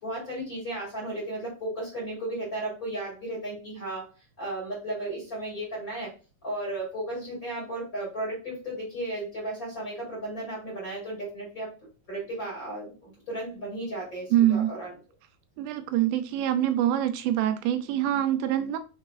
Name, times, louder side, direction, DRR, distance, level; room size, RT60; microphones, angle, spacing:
voice 1, 0.0-4.1 4.4-6.1 6.4-11.7 12.1-14.9, right 1 dB, 30° left, -7 dB, 2.2 m, -34 dB
voice 2, 14.3-14.7 15.6-18.8, right 12 dB, 85° right, 9 dB, 2.4 m, -25 dB
5.5 x 3.8 x 2.4 m, 0.33 s
omnidirectional pair, 4.2 m